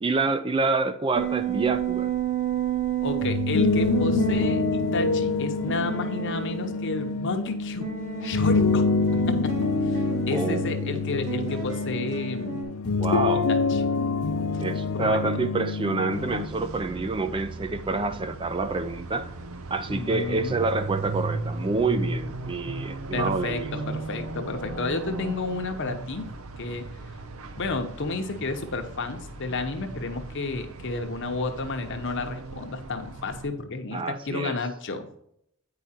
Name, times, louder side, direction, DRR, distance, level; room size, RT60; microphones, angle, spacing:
voice 1, 0.0-2.1 10.3-11.0 12.0-12.1 12.9-13.5 14.6-19.3 19.7-23.7 33.9-34.5, right 3 dB, 25° right, 0.4 m, -27 dB
sound 1, 1.1-7.1 7.8-12.6, right 6 dB, 40° right, 2.2 m, -31 dB
voice 2, 3.0-7.9 8.2-8.9 9.3-12.6 13.3-13.8 14.5-14.6 15.0-15.2 19.9-20.7 23.1-26.3 26.6-26.9 27.5-35.1, left 3 dB, 60° left, 0.9 m, -31 dB
sound 2, 3.1-16.5, left 4 dB, 90° left, 0.6 m, -26 dB
sound 3, 16.1-33.5, right 2 dB, 75° right, 0.7 m, -36 dB
9.1 x 4.9 x 4.3 m
head